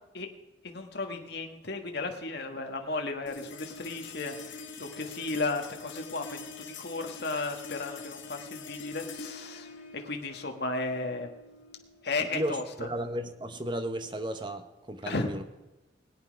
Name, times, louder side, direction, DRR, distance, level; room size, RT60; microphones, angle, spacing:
voice 1, 0.6-6.4 6.8-11.4 12.0-12.6 15.0-15.3, left 3 dB, 60° left, 4 dB, 1.5 m, -34 dB
sound 1, 3.3-13.9, left 4 dB, 90° left, 2.3 m, -45 dB
voice 2, 12.3-15.4, right 1 dB, 25° right, 8 dB, 1.0 m, -34 dB
20.5 x 8.8 x 5.2 m, 1.0 s
head